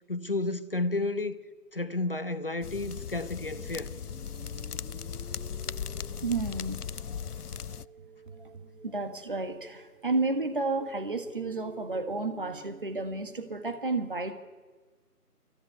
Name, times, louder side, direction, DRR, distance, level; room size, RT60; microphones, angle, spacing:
voice 1, 0.1-1.3 1.7-3.9, left 2 dB, 35° left, 1.1 m, -31 dB
sound 1, 2.6-7.9, left 7 dB, 70° left, 0.6 m, -38 dB
sound 2, 3.6-13.6, right 3 dB, 55° right, 3.3 m, -51 dB
voice 2, 6.2-6.8 7.1-7.2 8.4-8.5 8.8-14.3, right 3 dB, 35° right, 1.5 m, -31 dB
24.5 x 14.5 x 9.4 m
figure-of-eight pair, 170°, 47 cm